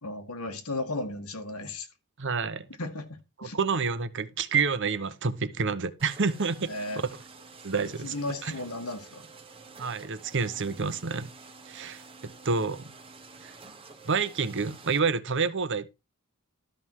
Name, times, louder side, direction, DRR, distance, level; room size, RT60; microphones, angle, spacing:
voice 1, 0.0-1.9 2.8-3.6 6.7-7.0 8.0-9.3, left 2 dB, 90° left, 1.9 m, -35 dB
voice 2, 2.2-2.7 3.4-6.7 7.6-8.1 8.4-8.5 9.8-11.3 11.7-12.9 13.4-13.5 14.1-15.9, right 5 dB, 55° right, 0.9 m, -28 dB
sound 1, 6.0-15.0, right 4 dB, 25° right, 1.2 m, -49 dB
12.5 x 5.7 x 4.7 m
head